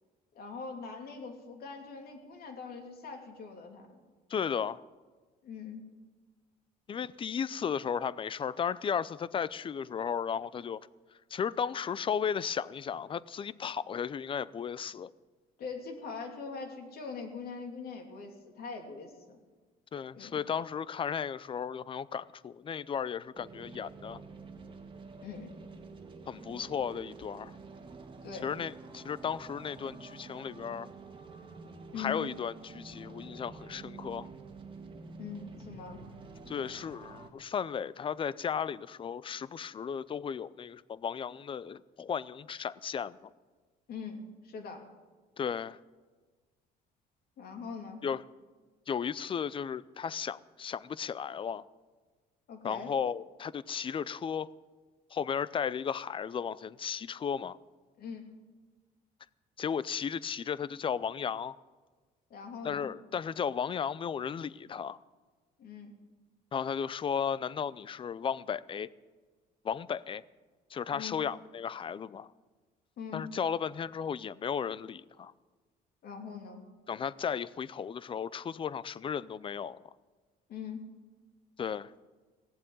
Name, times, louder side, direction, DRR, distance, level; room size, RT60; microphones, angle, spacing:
voice 1, 0.3-4.0 5.4-5.8 15.6-19.4 20.1-20.4 25.2-25.5 28.2-28.5 31.9-32.2 35.2-36.0 43.9-44.2 44.4-44.8 47.4-48.0 52.5-52.9 58.0-58.2 62.3-62.9 65.6-65.9 70.9-71.2 73.0-73.2 76.0-76.6 80.5-80.8, left 5 dB, 65° left, 2.9 m, -42 dB
voice 2, 4.3-4.8 6.9-10.8 11.3-15.1 19.9-24.2 26.3-27.5 28.4-30.9 32.0-34.3 36.5-43.3 45.4-45.8 48.0-48.2 48.9-51.6 52.6-54.5 55.1-57.6 59.6-61.5 62.6-65.0 66.5-68.9 69.6-70.2 70.7-72.3 73.1-75.3 76.9-79.8 81.6-81.9, left 7 dB, 30° left, 0.5 m, -35 dB
sound 1, 23.4-37.3, right 4 dB, 30° right, 1.7 m, -48 dB
17.0 x 7.6 x 9.2 m
cardioid pair, 110°, 17 cm